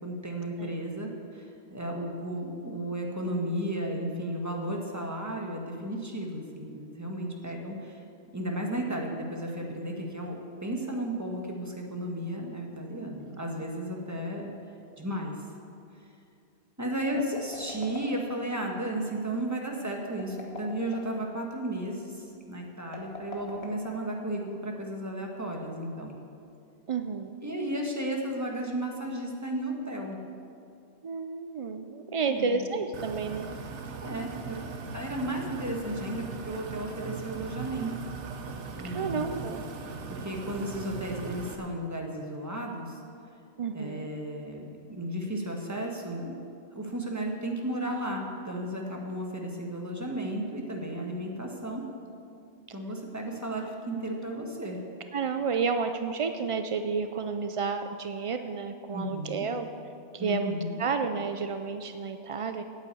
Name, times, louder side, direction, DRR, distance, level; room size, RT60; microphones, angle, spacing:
voice 1, 0.0-8.0 8.3-14.5 15.0-15.4 16.8-26.2 27.4-30.2 32.2-32.7 34.0-34.6 34.9-37.9 38.8-39.5 40.1-43.0 43.7-46.4 46.7-51.8 52.7-54.8 58.9-59.5 60.2-60.8, right 1 dB, 15° right, 0 dB, 1.4 m, -34 dB
sound 1, 17.1-18.6 20.1-21.2 22.8-24.4, left 2 dB, 65° left, 1.7 m, -42 dB
voice 2, 26.9-27.3 31.0-33.5 38.8-39.6 43.6-44.1 55.1-59.7 60.1-62.6, right 5 dB, 60° right, 8 dB, 0.3 m, -31 dB
sound 2, 32.9-41.6, right 5 dB, 85° right, 1.2 m, -39 dB
9.0 x 8.9 x 8.4 m, 2.5 s
omnidirectional pair, 1.2 m